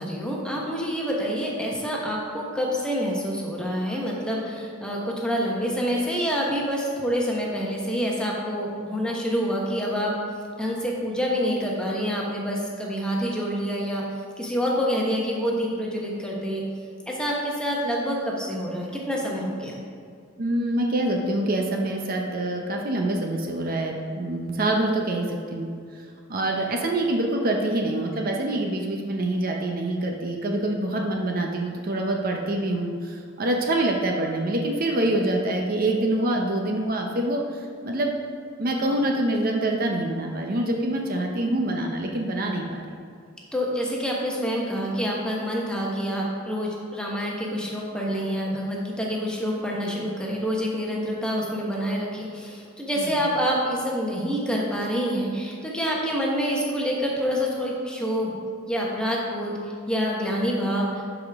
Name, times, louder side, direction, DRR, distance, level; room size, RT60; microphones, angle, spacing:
voice 1, 0.0-10.1 10.6-14.0 14.4-16.6 17.1-19.8 43.5-58.3 58.7-61.1, equal, 5° left, -3 dB, 1.1 m, -27 dB
voice 2, 20.4-25.7 26.3-38.1 38.6-43.0 49.8-50.1 53.0-53.1, right 1 dB, 45° right, 2 dB, 0.7 m, -25 dB
11.5 x 5.0 x 3.5 m, 2.3 s
head